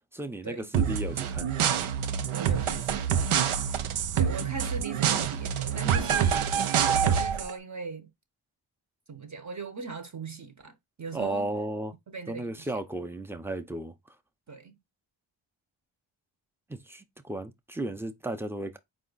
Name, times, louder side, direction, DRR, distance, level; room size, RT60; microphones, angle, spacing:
voice 1, 0.1-1.5 11.1-11.9 12.3-13.9 16.7-18.8, right 1 dB, 5° right, 0.6 m, -34 dB
sound 1, 0.7-7.5, right 8 dB, 80° right, 0.7 m, -26 dB
voice 2, 2.3-3.0 4.2-6.5 6.9-8.1 9.1-11.5 12.1-12.7 14.5-14.8, right 4 dB, 35° right, 0.9 m, -39 dB
4.2 x 2.4 x 3.9 m
cardioid pair, 60°, 49 cm